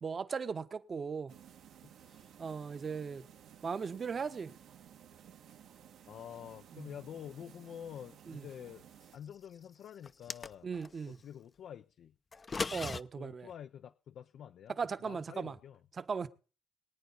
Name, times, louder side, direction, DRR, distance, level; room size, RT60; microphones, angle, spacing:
voice 1, 0.0-1.3 2.4-3.2 3.6-4.5 6.7-6.9 8.3-8.4 10.6-11.2 12.7-13.5 14.8-15.6 16.0-16.3, right 5 dB, 40° right, 1.2 m, -38 dB
sound 1, 1.3-9.2, right 9 dB, 80° right, 2.2 m, -57 dB
voice 2, 1.8-2.3 6.1-8.8 9.1-10.7 11.1-12.1 13.2-14.8 15.1-15.8, left 9 dB, 70° left, 0.6 m, -48 dB
sound 2, 10.0-10.9 12.3-13.0, left 4 dB, 35° left, 0.7 m, -37 dB
23.5 x 9.3 x 4.2 m
cardioid pair, 90°, 0 cm